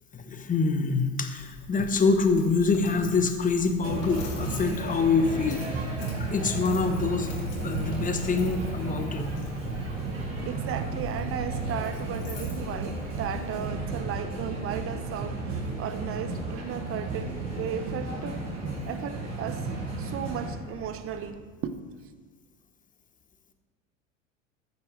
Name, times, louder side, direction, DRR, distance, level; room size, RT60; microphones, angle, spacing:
voice 1, 0.1-5.6 6.2-7.3 7.6-9.2, left 4 dB, 20° left, 1.3 m, -25 dB
Coin (dropping), 1.4-13.7, left 3 dB, 45° left, 3.2 m, -43 dB
sound 1, 3.8-20.5, right 3 dB, 60° right, 3.7 m, -33 dB
sound 2, 6.7-21.3, right 1 dB, 90° left, 2.7 m, -44 dB
voice 2, 10.4-18.4 18.9-19.7 20.0-21.8, right 8 dB, 35° right, 1.0 m, -35 dB
14.0 x 9.7 x 3.3 m
figure-of-eight pair, 80°, 40 cm